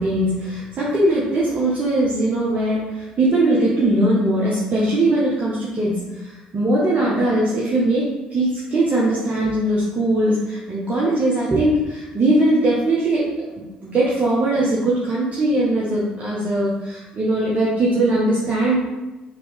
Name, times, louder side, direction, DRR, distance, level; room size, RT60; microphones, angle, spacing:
voice 1, 0.0-18.8, right 1 dB, 40° right, -6 dB, 0.9 m, -20 dB
3.1 x 3.0 x 3.4 m, 1.1 s
hypercardioid pair, 55°, 4 cm